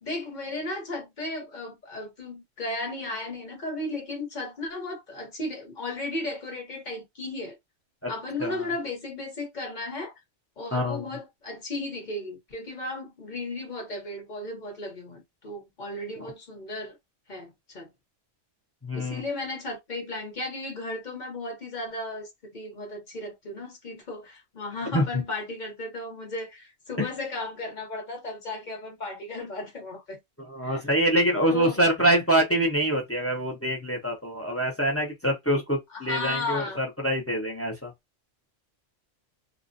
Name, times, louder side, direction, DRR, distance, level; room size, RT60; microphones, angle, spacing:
voice 1, 0.0-7.6 8.1-10.1 10.6-17.0 17.3-17.9 18.9-30.2 30.6-30.8 31.5-31.8 35.9-36.8, left 2 dB, 40° left, 1.0 m, -35 dB
voice 2, 10.7-11.0 16.2-16.3 18.8-19.2 24.9-25.1 27.0-27.1 30.4-37.9, right 1 dB, 20° left, 0.4 m, -25 dB
2.4 x 2.1 x 2.5 m
omnidirectional pair, 1.3 m